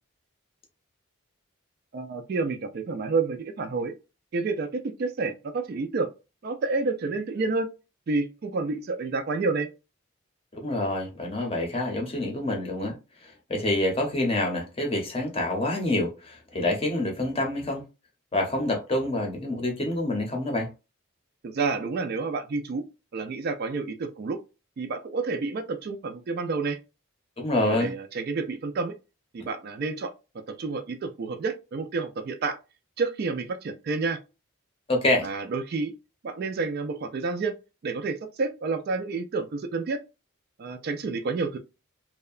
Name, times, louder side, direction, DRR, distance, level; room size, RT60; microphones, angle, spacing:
voice 1, 1.9-3.9 4.3-6.1 6.4-7.7 8.1-9.7 21.4-22.8 23.1-24.4 24.8-26.8 27.7-28.9 29.3-30.1 30.5-32.6 33.0-34.2 35.2-35.9 36.2-37.5 37.8-40.0 40.6-41.6, right 4 dB, 45° right, 0.3 m, -29 dB
voice 2, 10.5-13.0 13.2-17.8 18.3-20.7 27.4-27.9 34.9-35.3, left 1 dB, 25° left, 0.7 m, -27 dB
2.7 x 2.1 x 2.3 m
head